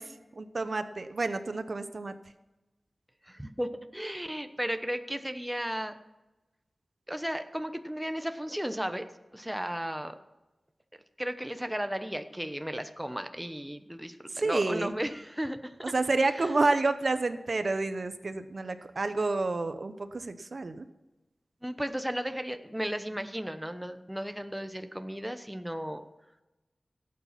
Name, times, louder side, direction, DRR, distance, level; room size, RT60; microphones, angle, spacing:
voice 1, 0.0-2.1 14.3-14.9 15.9-20.8, right 3 dB, 55° right, 10 dB, 0.8 m, -29 dB
voice 2, 3.2-6.0 7.1-9.1 9.3-10.1 11.2-15.9 16.3-16.5 21.6-26.0, equal, 5° right, 8 dB, 1.0 m, -35 dB
16.5 x 8.6 x 5.8 m, 1.0 s
wide cardioid pair, 85°, 0 cm